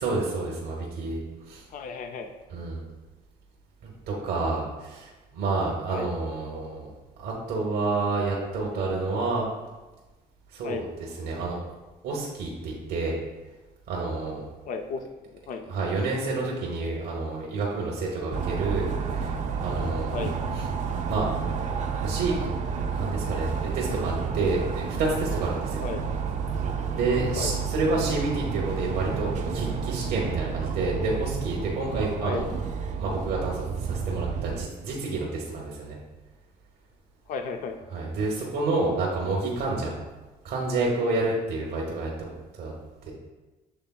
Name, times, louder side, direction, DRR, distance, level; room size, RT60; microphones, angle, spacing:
voice 1, 0.0-1.6 2.5-2.8 3.8-6.9 7.2-9.5 10.5-11.6 12.0-13.2 13.9-14.4 15.7-20.6 21.1-21.3 22.0-22.4 22.9-25.8 26.9-32.6 33.0-36.0 37.9-40.0 40.4-42.7 43.1-43.2, right 3 dB, 70° right, -2 dB, 0.9 m, -29 dB
voice 2, 1.7-2.3 5.9-6.1 10.6-10.9 14.6-15.0 15.3-15.7 20.1-20.4 25.8-26.0 27.3-27.5 32.2-32.4 37.3-37.8, left 5 dB, 50° left, 6 dB, 0.4 m, -34 dB
sound 1, 18.3-34.6, right 5 dB, 45° right, 0.5 m, -30 dB
6.9 x 3.2 x 2.3 m, 1.2 s
cardioid pair, 110°, 17 cm